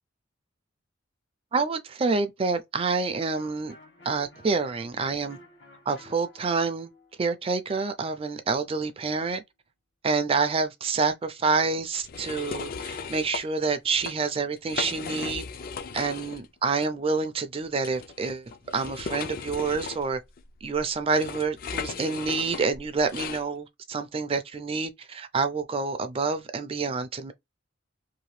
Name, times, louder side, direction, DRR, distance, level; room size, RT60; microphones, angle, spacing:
voice 1, 1.5-3.7 4.0-5.4 5.9-6.9 7.2-9.4 10.0-15.4 15.9-20.2 20.6-27.3, right 4 dB, 30° right, 0.4 m, -28 dB
Electric guitar, 3.3-8.9, left 2 dB, 65° left, 1.4 m, -54 dB
sound 1, 12.0-13.4 13.9-14.1 14.6-16.5 16.8-16.9 17.8-23.4, left 5 dB, 50° left, 0.4 m, -36 dB
2.8 x 2.2 x 3.1 m
head